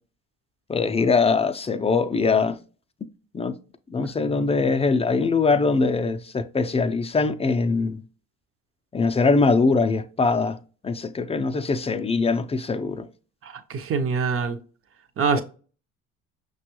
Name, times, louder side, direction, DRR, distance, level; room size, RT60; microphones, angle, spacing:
voice 1, 0.7-2.6 3.3-3.5 3.9-8.0 8.9-10.6 10.8-13.1 15.4-15.5, left 4 dB, 20° left, 0.4 m, -22 dB
voice 2, 13.4-14.6 15.2-15.4, right 5 dB, 40° right, 0.7 m, -24 dB
5.8 x 2.3 x 2.9 m
supercardioid pair, 65°, 33 cm